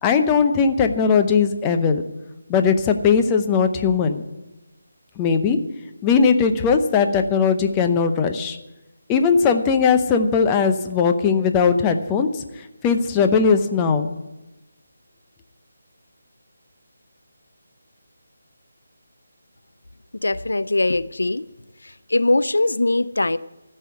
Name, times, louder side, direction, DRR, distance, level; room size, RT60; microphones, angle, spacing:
voice 1, 0.0-2.0 2.5-4.2 5.2-5.6 6.0-8.6 9.1-14.1, left 5 dB, 15° left, 6 dB, 0.7 m, -19 dB
voice 2, 20.2-21.4 21.8-23.4, left 2 dB, 85° left, 16 dB, 0.4 m, -21 dB
14.0 x 5.6 x 9.6 m, 1.1 s
figure-of-eight pair, 160°, 0 cm